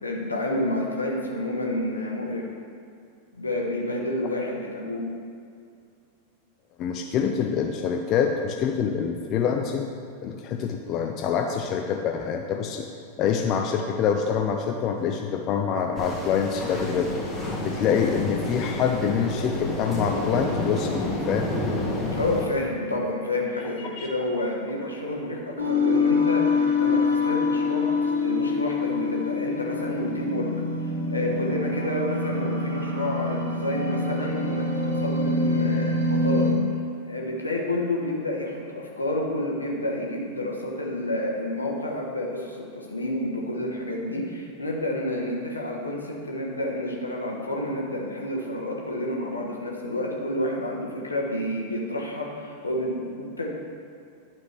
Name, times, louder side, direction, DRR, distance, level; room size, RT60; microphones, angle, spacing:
voice 1, 0.0-2.5 3.4-5.0 22.1-30.5 30.8-36.5 37.0-53.5, left 1 dB, 80° left, -2 dB, 1.1 m, -29 dB
voice 2, 6.8-9.9 10.2-12.8 13.2-17.2 17.6-21.6 24.0-24.1, left 7 dB, 35° left, 3 dB, 0.4 m, -26 dB
sound 1, 16.0-22.5, left 1 dB, 15° left, 1.6 m, -30 dB
sound 2, 25.6-36.5, left 3 dB, 80° right, 1.3 m, -25 dB
11.0 x 4.4 x 3.3 m, 2.4 s
figure-of-eight pair, 90°, 0 cm